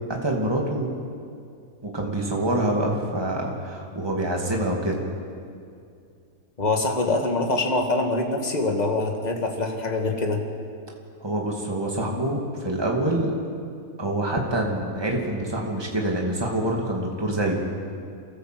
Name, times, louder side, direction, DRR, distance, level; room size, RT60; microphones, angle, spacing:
voice 1, 0.1-0.9 1.8-5.0 11.2-13.3 14.0-17.6, right 1 dB, 15° right, -1 dB, 2.6 m, -26 dB
voice 2, 6.6-10.4, left 2 dB, 25° left, 3 dB, 2.0 m, -24 dB
28.5 x 13.0 x 7.8 m, 2.4 s
omnidirectional pair, 1.8 m